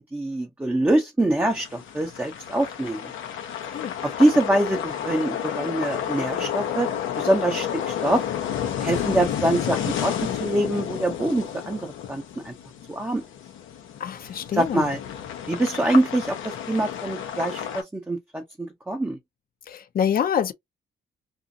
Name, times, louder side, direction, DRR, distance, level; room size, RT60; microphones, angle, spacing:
voice 1, 0.0-3.0 4.0-6.9 7.2-8.2 8.8-12.5 12.9-13.2 14.6-15.0 15.5-19.2, right 1 dB, 10° right, 0.6 m, -24 dB
sound 1, 1.5-17.8, left 9 dB, 85° left, 0.8 m, -31 dB
voice 2, 14.0-14.9 19.7-20.5, left 8 dB, 45° left, 0.6 m, -26 dB
2.5 x 2.4 x 2.6 m
cardioid pair, 90°, 20 cm